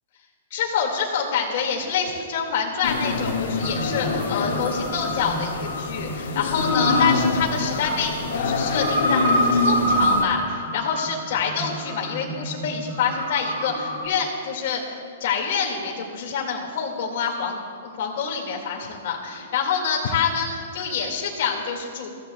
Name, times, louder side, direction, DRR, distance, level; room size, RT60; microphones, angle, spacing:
voice 1, 0.5-22.1, left 6 dB, 45° left, -1 dB, 2.0 m, -26 dB
sound 1, 2.8-10.2, left 3 dB, 80° left, 1.6 m, -25 dB
sound 2, 3.6-14.1, equal, 15° right, 2.5 m, -28 dB
22.0 x 14.5 x 2.3 m, 2.2 s
hypercardioid pair, 175°, 0 cm